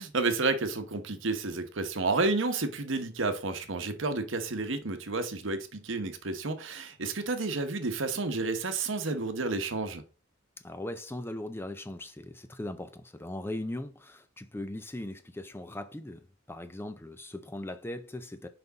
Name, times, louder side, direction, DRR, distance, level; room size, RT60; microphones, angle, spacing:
voice 1, 0.0-10.0, right 3 dB, 70° right, 1.0 m, -31 dB
voice 2, 10.6-18.5, left 1 dB, 10° left, 0.5 m, -39 dB
5.9 x 5.3 x 4.0 m
head